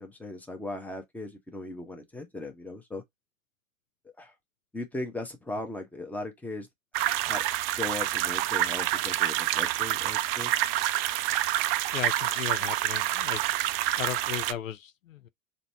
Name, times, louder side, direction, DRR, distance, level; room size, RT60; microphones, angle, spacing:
voice 1, 0.0-3.0 4.0-4.3 4.7-6.7 7.2-7.4 7.8-10.5, left 2 dB, 5° left, 0.8 m, -38 dB
sound 1, 6.9-14.5, right 14 dB, 50° right, 0.5 m, -27 dB
voice 2, 11.9-13.4 14.0-15.3, left 10 dB, 85° left, 0.5 m, -36 dB
4.0 x 2.2 x 3.3 m
hypercardioid pair, 90°, 38 cm